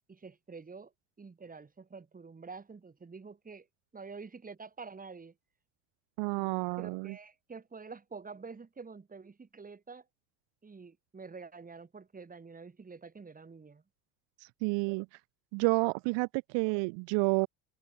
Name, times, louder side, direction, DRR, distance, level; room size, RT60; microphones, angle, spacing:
voice 1, 0.1-0.9 1.2-3.7 3.9-5.3 6.3-10.1 10.6-13.8, right 4 dB, 20° right, 2.6 m, -48 dB
voice 2, 6.2-7.1 14.6-15.1 15.5-17.5, right 31 dB, 70° right, 1.2 m, -30 dB
supercardioid pair, 95°, 44 cm